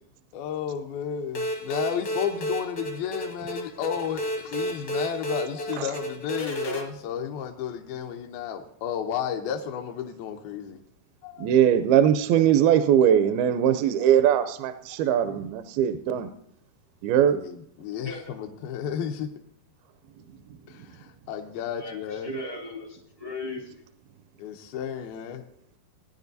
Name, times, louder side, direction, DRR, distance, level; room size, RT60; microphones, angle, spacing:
voice 1, 0.3-10.8 11.2-11.6 13.0-13.1 17.3-19.3 20.7-22.3 24.4-25.4, left 8 dB, 80° left, 3 dB, 2.4 m, -33 dB
sound 1, 1.3-6.8, equal, 60° left, 1.0 m, -31 dB
voice 2, 11.4-16.3 17.0-17.4, right 9 dB, 80° right, 11 dB, 2.3 m, -21 dB
voice 3, 21.8-23.7, left 1 dB, 45° right, -4 dB, 0.4 m, -37 dB
19.0 x 9.9 x 2.7 m, 0.68 s
omnidirectional pair, 4.6 m